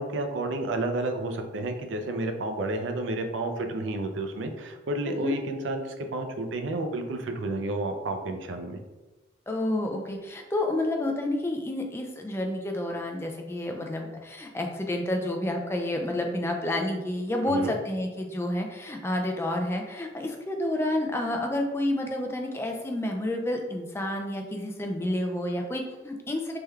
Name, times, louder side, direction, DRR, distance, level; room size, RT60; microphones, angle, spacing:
voice 1, 0.0-8.8 17.4-17.7, right 2 dB, 70° right, 5 dB, 0.4 m, -31 dB
voice 2, 9.5-26.6, left 1 dB, 15° left, 2 dB, 0.3 m, -29 dB
3.4 x 2.2 x 3.1 m, 1.1 s
head